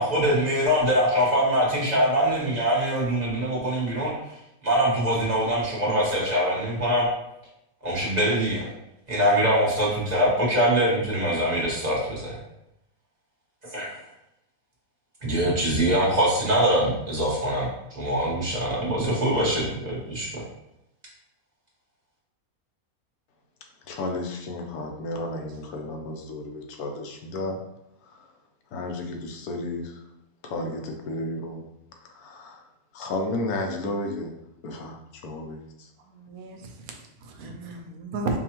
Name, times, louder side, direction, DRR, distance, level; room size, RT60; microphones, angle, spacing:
voice 1, 0.0-4.1 4.6-7.1 7.8-8.7 9.1-12.4 13.7-14.0 15.2-20.3, equal, 30° right, -6 dB, 1.2 m, -23 dB
voice 2, 23.8-27.6 28.0-28.3 28.7-30.0 30.4-31.6 32.0-32.7 32.9-34.3 34.6-35.9, left 2 dB, 85° left, 3 dB, 1.1 m, -33 dB
voice 3, 36.1-38.4, right 3 dB, 80° right, 3 dB, 1.1 m, -34 dB
5.0 x 2.3 x 2.9 m, 0.86 s
omnidirectional pair, 1.5 m